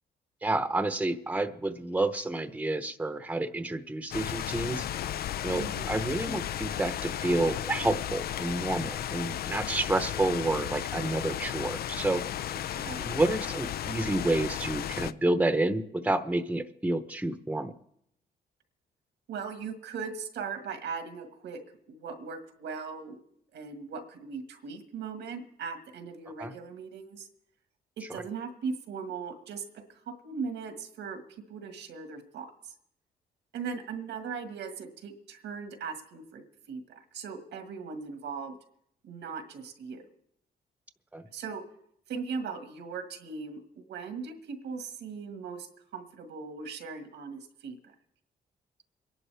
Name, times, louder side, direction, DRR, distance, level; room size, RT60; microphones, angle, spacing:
voice 1, 0.4-4.9 5.4-12.2 13.0-17.7 26.4-26.5 41.1-41.2, right 2 dB, 10° right, 10 dB, 0.9 m, -29 dB
sound 1, 4.1-15.1, left 11 dB, 60° left, 0.4 m, -34 dB
voice 2, 5.6-6.0 12.5-13.2 19.3-21.6 21.9-23.2 23.5-27.3 28.0-31.2 31.5-32.7 33.5-38.6 39.0-40.1 41.3-41.6 42.1-43.6 43.9-45.7 45.9-47.9, right 5 dB, 90° right, 6 dB, 1.7 m, -39 dB
24.0 x 11.0 x 3.4 m, 0.72 s
cardioid pair, 80°, 18 cm